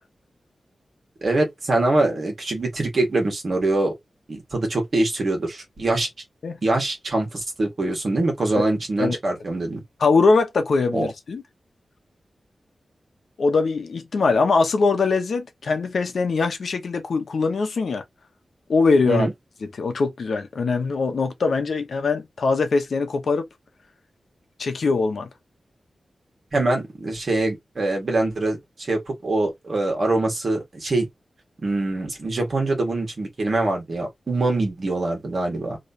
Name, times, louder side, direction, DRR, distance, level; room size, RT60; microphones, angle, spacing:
voice 1, 1.2-3.9 4.3-6.1 6.6-9.8 10.9-11.1 19.1-19.3 26.5-31.1 31.6-35.8, right 2 dB, 50° right, 1.7 m, -24 dB
voice 2, 10.0-11.4 13.4-18.0 18.7-19.3 19.7-23.4 24.6-25.3, left 4 dB, 70° left, 0.8 m, -22 dB
3.2 x 3.0 x 2.7 m
wide cardioid pair, 140°, 0 cm